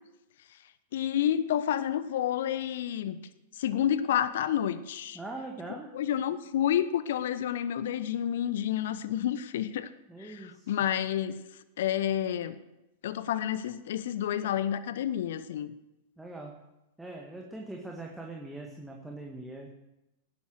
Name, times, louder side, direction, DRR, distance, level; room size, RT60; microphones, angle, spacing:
voice 1, 0.9-3.3 3.6-5.2 5.9-9.9 10.2-11.4 11.8-12.6 13.0-15.7, left 10 dB, 60° left, 14 dB, 0.9 m, -29 dB
voice 2, 5.1-5.9 10.1-10.7 16.2-16.6 17.0-19.7, right 2 dB, 5° right, 0 dB, 2.0 m, -42 dB
18.0 x 10.5 x 6.4 m, 0.94 s
figure-of-eight pair, 95°, 0 cm